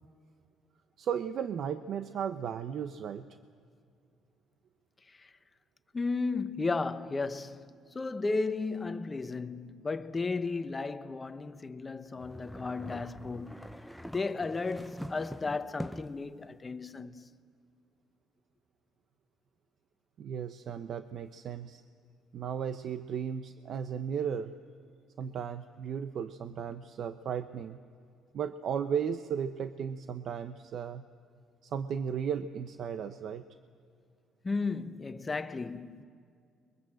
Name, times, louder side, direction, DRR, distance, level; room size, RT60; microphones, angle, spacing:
voice 1, 1.0-3.3 20.2-21.8 22.3-24.5 25.2-27.8 28.3-31.0 31.6-33.4, right 7 dB, 60° right, 0.8 m, -35 dB
voice 2, 5.9-7.6 7.9-13.6 14.1-17.3 34.4-36.0, left 3 dB, 25° left, 1.1 m, -34 dB
sound 1, 12.2-16.3, equal, ahead, 0.8 m, -43 dB
30.0 x 23.0 x 7.8 m
cardioid pair, 100°, 0 cm